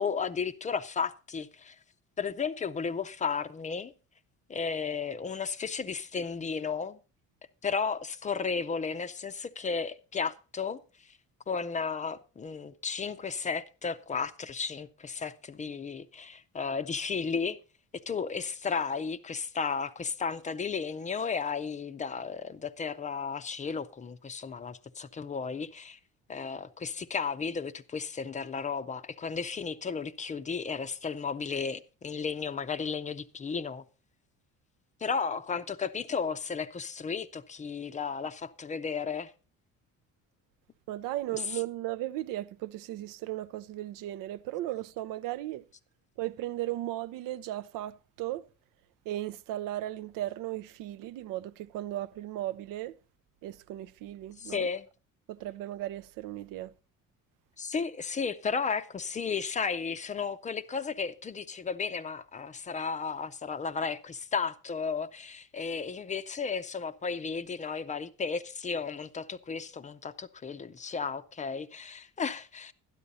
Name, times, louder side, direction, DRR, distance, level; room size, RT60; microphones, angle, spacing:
voice 1, 0.0-1.8 2.2-3.9 4.5-7.0 7.6-10.8 11.5-17.6 18.1-26.0 26.3-33.8 35.0-39.3 54.4-54.9 57.6-72.7, left 5 dB, 25° left, 0.5 m, -34 dB
voice 2, 40.9-45.7 46.2-48.4 49.1-53.0 53.4-54.7 55.3-56.7, right 15 dB, 85° right, 0.6 m, -36 dB
12.5 x 9.9 x 4.0 m
cardioid pair, 140°, 32 cm